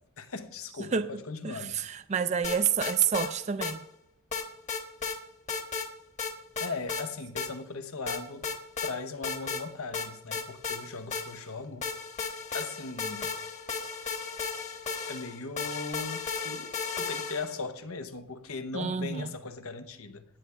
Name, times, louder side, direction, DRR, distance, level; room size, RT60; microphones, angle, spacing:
voice 1, 0.2-1.8 6.6-8.5 8.8-11.9 12.5-13.3 15.1-20.3, left 3 dB, 85° left, 1.0 m, -38 dB
voice 2, 0.8-3.8 18.7-19.3, right 7 dB, 30° right, 0.4 m, -29 dB
sound 1, 2.4-3.3 3.6-3.7 4.3-5.2 5.5-5.9 6.2-7.0 7.4-7.5 8.1-8.9 9.2-9.6 9.9-11.5 11.8-17.6, left 5 dB, 35° left, 1.2 m, -34 dB
18.0 x 9.8 x 3.4 m
head